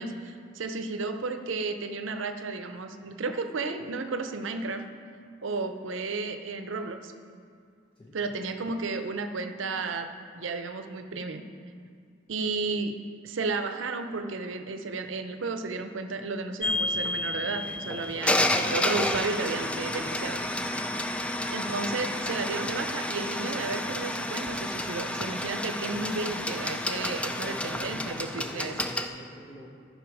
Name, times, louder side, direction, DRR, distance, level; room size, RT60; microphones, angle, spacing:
voice 1, 0.0-4.8 5.4-7.1 8.1-11.4 12.3-13.0 13.2-20.7 21.5-28.7, right 3 dB, 85° right, 7 dB, 0.6 m, -33 dB
sound 1, 16.6-29.1, left 1 dB, 5° left, 0.3 m, -30 dB
voice 2, 27.2-29.7, left 1 dB, 25° left, -4 dB, 0.8 m, -45 dB
13.0 x 5.7 x 4.8 m, 2.3 s
head